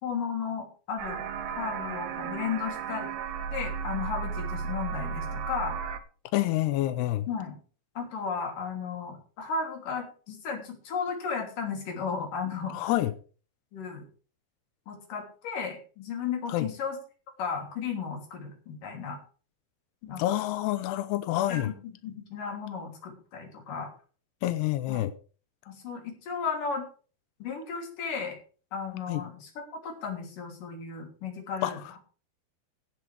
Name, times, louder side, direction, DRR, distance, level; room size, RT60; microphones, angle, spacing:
voice 1, 0.0-3.1 3.5-5.8 7.3-7.6 8.0-12.9 13.7-14.0 14.9-17.0 17.4-19.2 20.0-20.2 21.5-23.9 24.9-25.0 25.7-26.9 27.4-28.4 28.7-32.0, left 5 dB, 45° left, 4.2 m, -34 dB
sound 1, 1.0-6.0, right 6 dB, 70° right, 2.5 m, -34 dB
voice 2, 6.3-7.3 12.7-13.1 16.5-16.7 20.2-21.7 24.4-25.1 29.1-29.2 31.6-31.7, left 15 dB, 85° left, 2.4 m, -27 dB
16.5 x 10.5 x 3.5 m
omnidirectional pair, 5.7 m